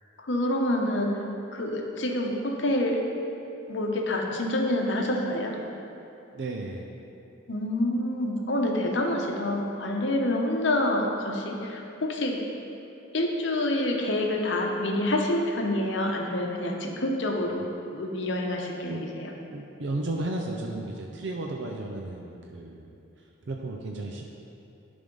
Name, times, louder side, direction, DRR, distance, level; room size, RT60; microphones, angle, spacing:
voice 1, 0.2-1.2 1.5-3.0 3.7-5.6 7.5-12.4 13.1-19.3, left 1 dB, 65° left, 1 dB, 0.9 m, -27 dB
voice 2, 6.3-6.9 18.9-19.0 19.5-22.9 23.5-24.2, right 2 dB, 60° right, 0 dB, 0.5 m, -33 dB
10.5 x 3.5 x 5.3 m, 2.8 s
head